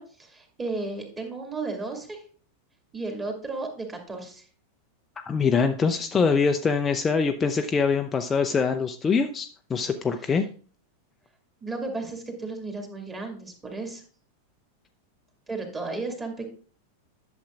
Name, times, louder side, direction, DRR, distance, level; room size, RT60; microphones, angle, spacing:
voice 1, 0.0-2.2 2.9-4.4 11.6-14.0 15.5-16.5, right 3 dB, 15° right, 3 dB, 2.2 m, -34 dB
voice 2, 5.3-10.4, left 5 dB, 20° left, 6 dB, 0.5 m, -24 dB
11.0 x 7.3 x 2.5 m, 0.42 s
figure-of-eight pair, 90°, 0 cm